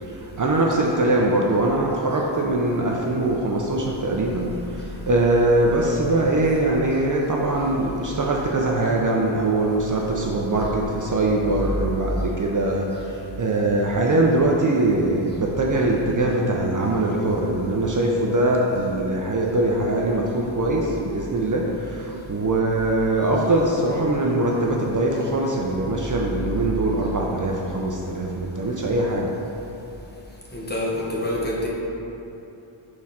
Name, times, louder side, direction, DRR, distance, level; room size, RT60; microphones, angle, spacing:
voice 1, 0.0-29.3, right 2 dB, 40° right, -2 dB, 0.5 m, -22 dB
voice 2, 30.5-31.7, left 1 dB, 20° left, -4 dB, 0.9 m, -26 dB
6.2 x 3.7 x 4.2 m, 3.0 s
wide cardioid pair, 115°, 50 cm